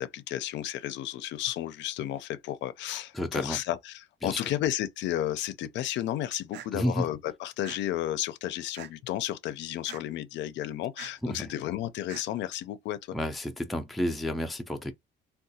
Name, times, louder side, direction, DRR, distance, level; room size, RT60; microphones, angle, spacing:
voice 1, 0.0-13.2, left 13 dB, 70° left, 0.4 m, -33 dB
voice 2, 3.1-3.6 4.2-4.4 6.7-7.1 11.2-11.5 13.1-14.9, equal, ahead, 0.3 m, -31 dB
sound 1, 6.5-6.7 7.6-7.8 8.7-9.1 9.9-10.0 11.0-11.1 12.1-12.2, right 10 dB, 65° right, 0.5 m, -44 dB
3.6 x 2.2 x 2.7 m
cardioid pair, 160°, 19 cm